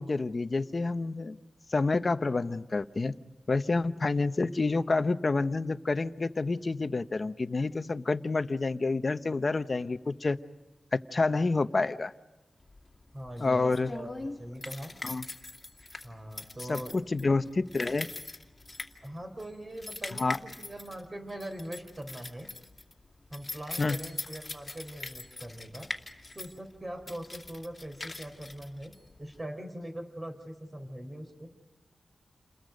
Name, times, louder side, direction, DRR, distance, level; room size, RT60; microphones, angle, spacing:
voice 1, 0.0-1.4 1.7-3.2 3.5-10.4 10.9-12.1 13.4-13.9 15.0-15.3 16.7-18.1 20.1-20.4 23.8-24.0, left 3 dB, 40° left, 11 dB, 0.9 m, -28 dB
sound 1, 12.7-29.4, left 2 dB, 25° left, 2.5 m, -42 dB
voice 2, 13.1-14.9 16.0-17.0 19.0-22.5 23.3-25.9 26.3-28.9 29.2-31.5, right 1 dB, 25° right, 5 dB, 4.2 m, -42 dB
29.5 x 21.5 x 5.3 m, 1.2 s
wide cardioid pair, 100°, 0 cm